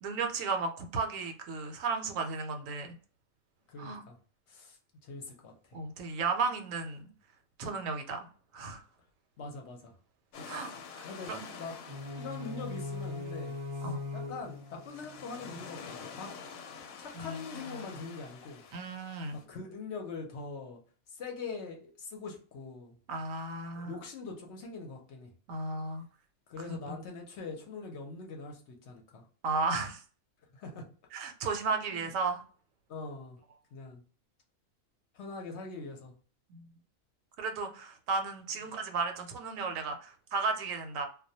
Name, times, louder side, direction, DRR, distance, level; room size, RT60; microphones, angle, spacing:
voice 1, 0.0-3.0 3.8-4.0 5.7-7.0 7.6-8.3 8.5-8.8 10.5-10.7 11.0-11.5 13.8-14.0 17.1-17.4 18.7-19.4 23.1-24.0 25.5-26.0 29.4-30.0 31.1-32.4 36.5-36.7 37.4-41.1, right 4 dB, 75° right, 5 dB, 0.9 m, -34 dB
voice 2, 3.7-4.2 4.5-5.8 9.4-9.9 10.4-10.7 11.0-11.8 12.1-16.3 16.8-18.6 19.3-20.8 21.1-23.0 23.7-25.3 26.5-29.3 30.5-30.9 31.9-32.0 32.9-33.4 33.7-34.0 35.1-36.1, left 4 dB, 65° left, 2 dB, 0.8 m, -43 dB
sound 1, 10.3-19.4, left 5 dB, 90° left, 1.0 m, -48 dB
sound 2, 11.9-15.9, left 3 dB, 40° right, 0.3 m, -40 dB
2.3 x 2.1 x 2.6 m, 0.42 s
omnidirectional pair, 1.4 m